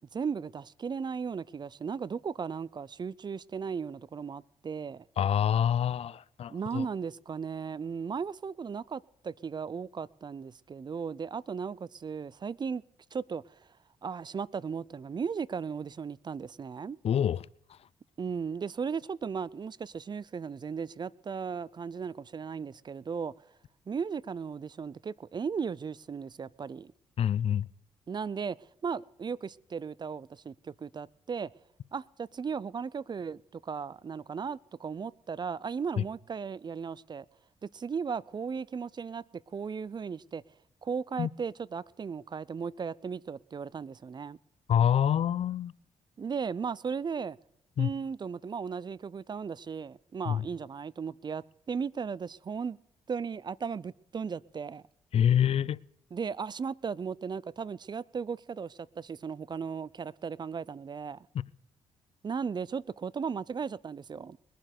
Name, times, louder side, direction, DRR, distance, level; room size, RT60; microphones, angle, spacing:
voice 1, 0.1-5.0 6.5-12.8 13.1-13.6 14.0-17.0 18.2-23.3 23.9-26.9 28.1-31.5 31.9-37.3 37.6-40.4 40.8-44.4 46.2-47.4 47.8-52.8 53.1-54.8 56.1-61.3 62.2-64.4, right 6 dB, 35° right, 0.5 m, -36 dB
voice 2, 5.2-6.9 17.0-17.4 27.2-27.7 41.2-41.3 44.7-45.7 47.8-47.9 50.3-50.4 55.1-55.8, left 9 dB, 55° left, 0.4 m, -26 dB
21.5 x 7.5 x 6.6 m
cardioid pair, 70°, 12 cm